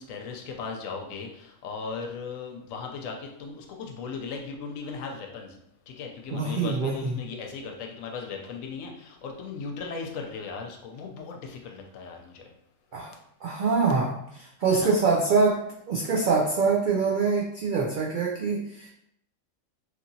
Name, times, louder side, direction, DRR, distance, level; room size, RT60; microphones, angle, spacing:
voice 1, 0.0-5.6 5.9-12.5 14.7-15.0, left 5 dB, 80° left, 2 dB, 1.0 m, -37 dB
voice 2, 6.3-7.2 12.9-13.1 13.4-18.9, right 4 dB, 85° right, -2 dB, 0.4 m, -25 dB
3.0 x 2.8 x 2.6 m, 0.74 s
omnidirectional pair, 1.4 m